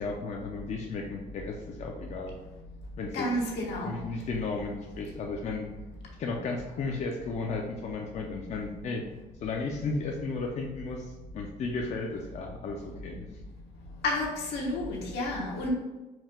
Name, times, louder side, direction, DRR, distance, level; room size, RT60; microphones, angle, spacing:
voice 1, 0.0-2.4 3.0-3.3 3.8-5.7 6.2-9.0 9.4-13.3, left 3 dB, 40° left, 1 dB, 0.5 m, -34 dB
voice 2, 3.1-4.0 14.0-15.7, left 1 dB, 80° left, -2 dB, 1.1 m, -31 dB
4.5 x 2.3 x 3.6 m, 1.1 s
cardioid pair, 110°, 17 cm